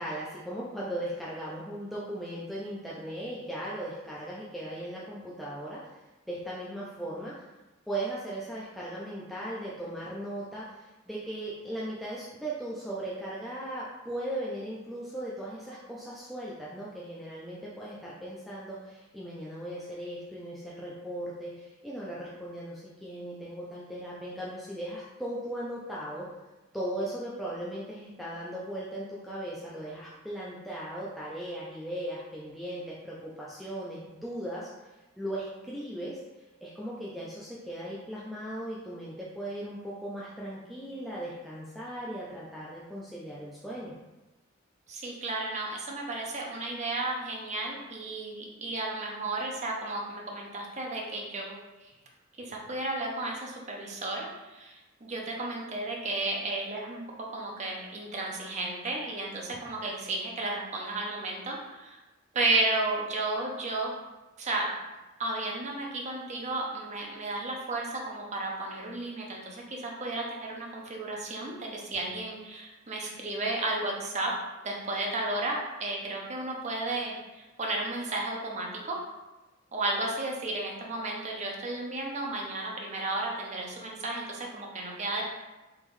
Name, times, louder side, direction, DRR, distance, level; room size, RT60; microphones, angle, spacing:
voice 1, 0.0-7.3 7.9-26.2 26.7-36.2 36.6-43.9, right 1 dB, ahead, -7 dB, 0.4 m, -38 dB
voice 2, 44.9-51.6 52.4-57.0 57.3-62.0 62.3-63.9 64.4-64.7 65.2-74.3 74.6-79.0 79.7-85.2, right 2 dB, 35° right, -1 dB, 0.7 m, -33 dB
3.6 x 3.0 x 3.1 m, 1.1 s
head